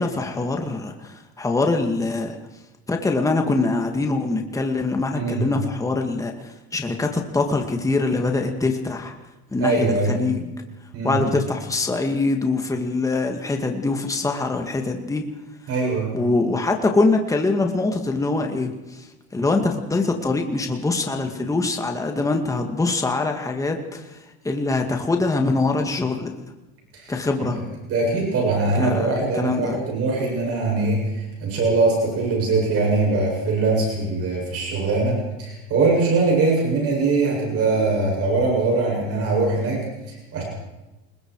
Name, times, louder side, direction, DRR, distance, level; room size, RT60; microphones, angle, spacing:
voice 1, 0.0-2.4 2.9-9.1 9.5-10.5 11.0-15.2 16.1-19.1 19.3-26.4 27.1-27.6 28.8-29.8, left 3 dB, 10° left, 3 dB, 2.1 m, -23 dB
voice 2, 5.1-5.5 9.6-10.2 10.9-11.2 15.7-16.2 26.9-27.1 27.4-27.6 27.9-40.4, right 3 dB, 45° right, -1 dB, 7.8 m, -22 dB
29.0 x 21.0 x 4.8 m, 1.0 s
cardioid pair, 135°, 32 cm